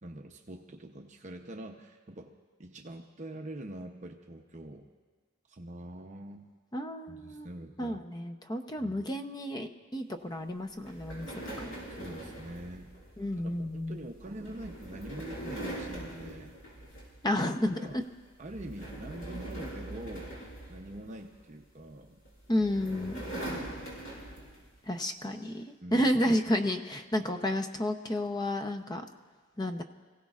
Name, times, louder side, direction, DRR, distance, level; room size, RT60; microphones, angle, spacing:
voice 1, 0.0-2.3 2.6-4.9 5.5-6.5 7.1-8.0 8.8-9.0 11.9-12.9 13.4-16.6 17.8-18.0 18.4-20.4 20.7-22.2 23.3-24.0 25.8-26.1, right 1 dB, 35° right, 2 dB, 0.7 m, -44 dB
voice 2, 6.7-7.5 7.8-11.3 11.6-11.7 13.2-14.0 17.2-18.0 22.5-23.2 24.9-29.0 29.6-29.8, left 1 dB, 20° left, 6 dB, 0.7 m, -31 dB
sound 1, 10.8-17.4 17.7-18.0 18.4-21.4 22.2-24.7, right 1 dB, 70° left, 5.5 m, -42 dB
27.5 x 16.0 x 2.5 m, 1.4 s
head